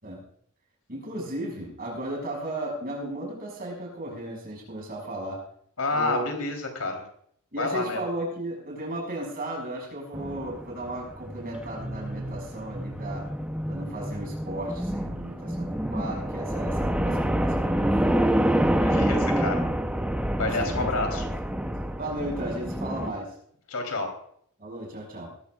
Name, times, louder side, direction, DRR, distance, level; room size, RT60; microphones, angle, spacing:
voice 1, 0.9-5.4 5.9-6.2 7.5-13.3 13.7-19.1 20.4-21.6 22.0-23.3 24.6-25.3, right 1 dB, 40° right, 0 dB, 5.8 m, -35 dB
voice 2, 5.8-7.0 7.6-8.0 18.8-19.6 20.4-21.2 23.7-24.1, left 3 dB, 75° left, 3 dB, 3.5 m, -29 dB
sound 1, 10.1-23.1, right 1 dB, 5° right, 0.7 m, -27 dB
19.0 x 15.0 x 2.4 m, 0.65 s
head